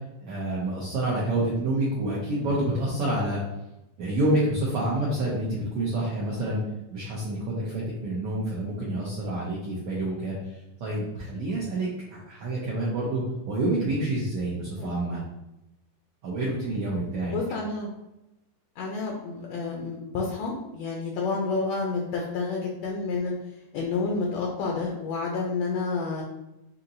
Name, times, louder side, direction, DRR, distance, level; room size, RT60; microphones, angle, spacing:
voice 1, 0.2-3.4 4.0-6.6 6.9-15.2 16.2-17.3, right 1 dB, 85° right, -6 dB, 1.3 m, -28 dB
voice 2, 14.8-15.2 17.3-17.9 18.8-23.3 23.7-26.2, left 4 dB, 85° left, -1 dB, 1.5 m, -29 dB
5.7 x 2.8 x 2.5 m, 0.92 s
omnidirectional pair, 3.7 m